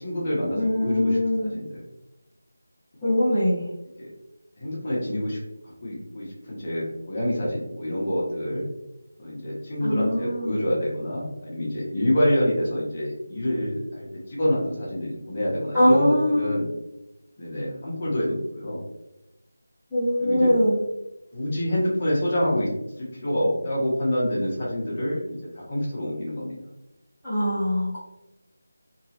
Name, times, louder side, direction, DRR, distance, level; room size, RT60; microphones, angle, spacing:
voice 1, 0.0-1.8 3.0-3.1 4.0-4.1 4.6-5.4 5.6-8.6 9.2-16.7 17.4-18.8 20.2-20.5 21.3-22.7 23.0-26.6, left 1 dB, 30° left, -6 dB, 1.0 m, -27 dB
voice 2, 0.5-1.5 3.0-3.6 9.8-10.6 15.7-16.5 19.9-20.8 27.2-28.0, left 1 dB, 5° right, -21 dB, 1.0 m, -22 dB
2.9 x 2.9 x 2.7 m, 0.92 s
figure-of-eight pair, 170°, 0 cm